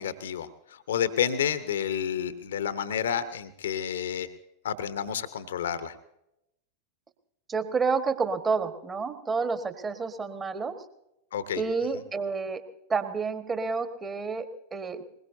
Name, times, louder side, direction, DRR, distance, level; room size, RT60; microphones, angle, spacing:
voice 1, 0.0-4.3 4.6-5.9 11.3-11.6, left 8 dB, 65° left, 13 dB, 0.9 m, -30 dB
voice 2, 7.5-10.7 11.6-12.6 12.9-15.0, right 4 dB, 20° right, 8 dB, 1.5 m, -29 dB
21.5 x 21.0 x 2.7 m, 0.83 s
figure-of-eight pair, 90°, 0 cm